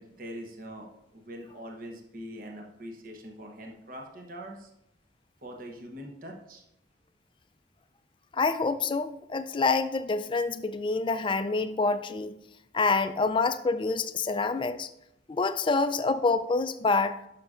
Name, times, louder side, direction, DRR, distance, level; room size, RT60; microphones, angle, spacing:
voice 1, 0.0-4.7 5.4-6.6, equal, 50° right, 1 dB, 1.0 m, -43 dB
voice 2, 8.3-12.3 12.7-14.9 15.3-17.2, left 3 dB, 25° left, 11 dB, 0.4 m, -27 dB
11.5 x 6.0 x 2.5 m, 0.82 s
head